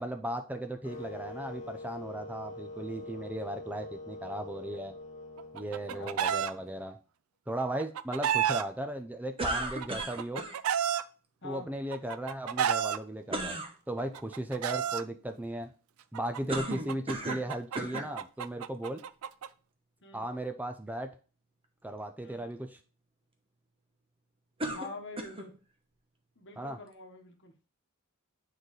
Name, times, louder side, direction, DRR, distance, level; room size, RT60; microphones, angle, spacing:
voice 1, 0.0-4.9 5.5-7.0 7.5-10.4 11.4-13.6 13.9-15.7 16.1-19.0 20.1-21.1 21.8-22.8 26.6-26.8, right 1 dB, 5° right, 7 dB, 0.4 m, -36 dB
sound 1, 0.8-6.9, left 2 dB, 30° left, 1.5 m, -45 dB
Chicken rooster, 5.4-6.5 7.6-8.6 9.6-11.0 11.9-13.0 14.0-15.0 16.1-19.5, right 9 dB, 75° right, 0.4 m, -31 dB
sound 2, 9.4-10.6 13.3-13.7 16.5-17.5 17.8-18.1 18.9-19.0 24.6-25.5, right 1 dB, 25° right, 0.9 m, -35 dB
voice 2, 24.7-25.5 26.4-27.5, left 2 dB, 55° left, 4 dB, 1.3 m, -45 dB
8.8 x 3.9 x 3.2 m, 0.36 s
head